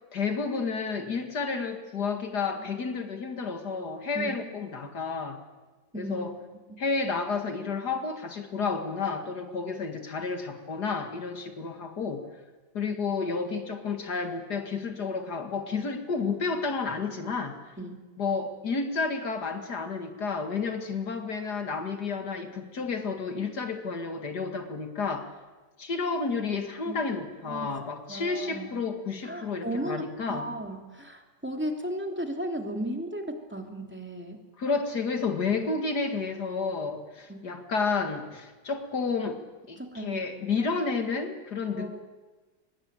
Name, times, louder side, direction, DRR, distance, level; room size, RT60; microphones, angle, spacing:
voice 1, 0.1-5.4 5.9-6.3 6.8-12.3 12.7-17.6 18.2-25.3 25.8-30.5 34.6-39.4 39.7-42.0, left 4 dB, 65° left, 6 dB, 2.5 m, -31 dB
voice 2, 5.9-6.3 17.8-18.0 26.9-27.0 27.5-27.7 28.1-28.8 29.2-34.4 37.3-37.4 39.8-40.2 41.7-42.0, right 1 dB, 5° right, 3 dB, 3.0 m, -35 dB
23.5 x 21.5 x 9.0 m, 1.3 s
omnidirectional pair, 1.9 m